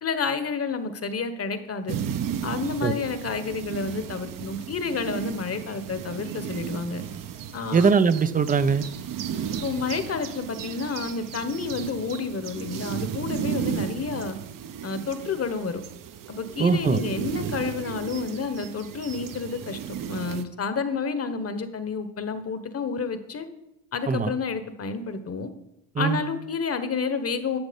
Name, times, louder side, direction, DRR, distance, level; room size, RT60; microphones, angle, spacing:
voice 1, 0.0-2.0 2.4-7.0 7.5-7.9 9.6-14.4 14.8-15.8 16.3-19.8 20.1-23.5 23.9-25.5 26.0-27.6, left 5 dB, 30° left, 10 dB, 1.3 m, -30 dB
sound 1, 1.9-20.4, right 8 dB, 40° right, 1.0 m, -34 dB
voice 2, 7.7-8.9 16.6-17.0 24.1-24.3 26.0-26.2, right 5 dB, 15° right, 13 dB, 0.6 m, -21 dB
12.0 x 7.0 x 5.3 m, 0.86 s
supercardioid pair, 85°, 49 cm